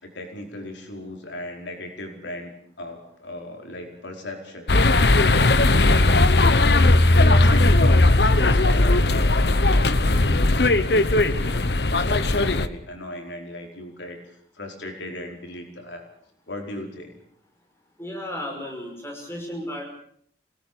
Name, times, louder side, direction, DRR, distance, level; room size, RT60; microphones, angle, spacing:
voice 1, 0.0-2.5 2.8-4.7 5.1-16.1 16.5-17.1, left 1 dB, 90° left, 3 dB, 5.0 m, -37 dB
sound 1, 4.7-12.7, left 2 dB, 65° left, 1.0 m, -17 dB
voice 2, 18.0-19.8, left 1 dB, 15° left, 0 dB, 5.8 m, -34 dB
26.0 x 19.0 x 7.1 m, 0.64 s
head